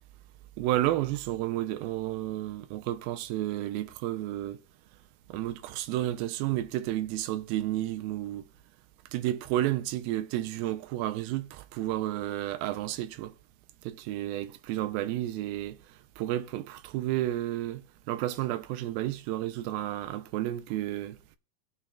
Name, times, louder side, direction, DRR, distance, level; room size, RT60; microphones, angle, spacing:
voice 1, 0.6-4.6 5.3-8.4 9.1-13.3 13.8-15.8 16.2-21.2, right 14 dB, 85° right, 2.4 m, -31 dB
19.5 x 6.9 x 2.4 m
omnidirectional pair, 4.2 m